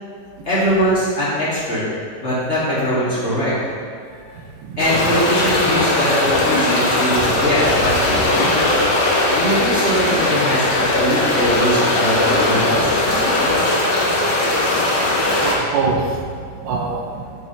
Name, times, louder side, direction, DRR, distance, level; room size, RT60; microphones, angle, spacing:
voice 1, 0.4-1.8 2.1-3.7 4.1-4.4 4.8-8.4 9.3-12.9, equal, 35° left, -9 dB, 1.3 m, -21 dB
voice 2, 4.4-5.2 15.4-16.2 16.6-17.2, right 4 dB, 90° right, 0 dB, 2.4 m, -24 dB
sound 1, 4.8-15.6, left 2 dB, 90° left, 0.9 m, -18 dB
7.6 x 7.4 x 2.8 m, 2.2 s
omnidirectional pair, 3.7 m